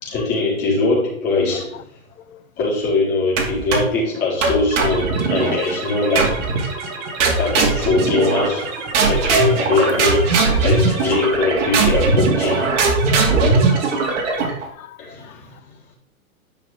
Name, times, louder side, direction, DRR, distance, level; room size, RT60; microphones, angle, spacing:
voice 1, 0.0-1.8 2.6-6.4 7.4-8.7 9.1-12.7 15.0-15.5, left 3 dB, 25° left, 4.0 m, -21 dB
sound 1, 3.4-4.0 4.4-5.6 6.2-6.7 7.2-8.7 8.9-14.6, right 3 dB, 55° right, 2.5 m, -19 dB
sound 2, 4.7-14.5, right 4 dB, 35° right, 2.3 m, -31 dB
voice 2, 13.3-14.2 14.5-15.0 15.2-15.3, left 11 dB, 70° left, 0.8 m, -41 dB
11.0 x 6.0 x 3.6 m
hypercardioid pair, 145°, 42 cm